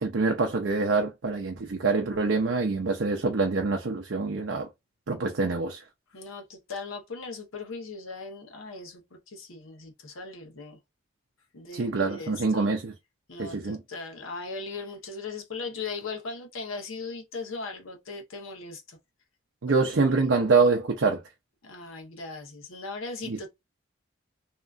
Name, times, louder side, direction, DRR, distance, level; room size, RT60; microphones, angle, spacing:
voice 1, 0.0-4.7 5.1-5.8 11.7-12.9 13.4-13.8 19.6-21.2 23.3-23.4, right 4 dB, 60° right, 0.5 m, -25 dB
voice 2, 6.1-10.8 11.5-12.7 13.3-19.0 19.7-20.3 21.6-23.5, left 4 dB, 80° left, 0.9 m, -39 dB
2.8 x 2.3 x 2.4 m
head